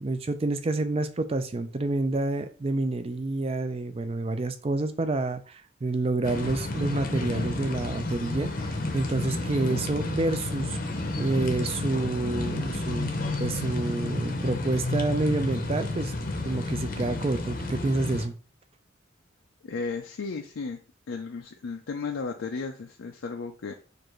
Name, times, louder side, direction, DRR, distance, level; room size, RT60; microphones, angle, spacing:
voice 1, 0.0-10.8 11.2-13.1 13.4-16.1 16.4-18.3, right 2 dB, 30° right, 9 dB, 0.4 m, -28 dB
sound 1, 6.2-18.3, left 2 dB, 45° left, 0.7 m, -31 dB
voice 2, 19.6-20.8 21.1-23.7, left 4 dB, 80° left, 2 dB, 0.5 m, -34 dB
6.6 x 2.6 x 3.0 m, 0.40 s
head